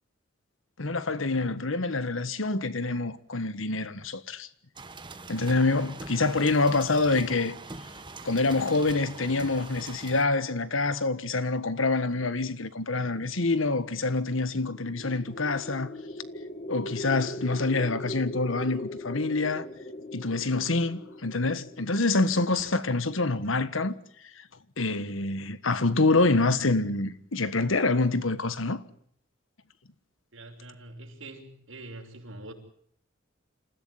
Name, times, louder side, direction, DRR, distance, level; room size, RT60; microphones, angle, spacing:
voice 1, 0.8-4.5 5.3-7.6 8.2-15.9 16.7-19.7 20.1-23.9 24.8-28.8, left 3 dB, 85° left, 1.5 m, -26 dB
sound 1, 4.8-10.2, right 3 dB, 25° right, 1.7 m, -43 dB
sound 2, 14.6-22.6, left 1 dB, 40° left, 1.9 m, -39 dB
voice 2, 30.3-32.5, right 2 dB, 80° right, 6.1 m, -44 dB
28.0 x 15.5 x 9.6 m
head